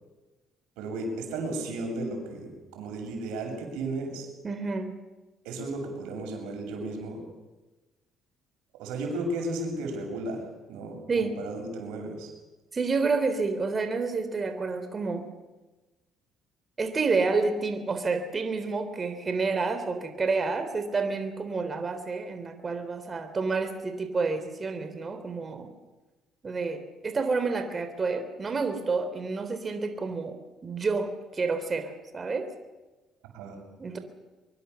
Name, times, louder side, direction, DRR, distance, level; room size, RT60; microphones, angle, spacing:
voice 1, 0.8-4.3 5.4-7.2 8.8-12.3 33.3-33.6, right 2 dB, 80° right, 3 dB, 7.2 m, -34 dB
voice 2, 4.4-4.9 11.1-11.4 12.7-15.3 16.8-25.7 26.4-30.4 30.6-32.5 33.8-34.0, right 4 dB, 35° right, 8 dB, 3.3 m, -29 dB
23.5 x 23.0 x 7.0 m, 1.2 s
supercardioid pair, 65°, 0 cm